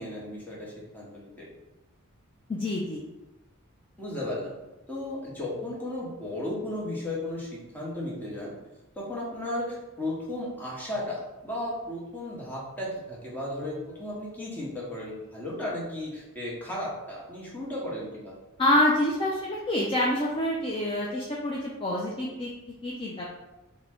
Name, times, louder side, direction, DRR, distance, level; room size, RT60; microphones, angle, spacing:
voice 1, 0.0-1.4 4.0-4.6 4.9-8.6 9.0-18.3, left 1 dB, 10° left, -6 dB, 0.9 m, -35 dB
voice 2, 2.5-3.0 18.6-22.5 22.8-23.3, left 1 dB, 25° left, -4 dB, 0.4 m, -27 dB
3.7 x 2.1 x 3.5 m, 1.0 s
head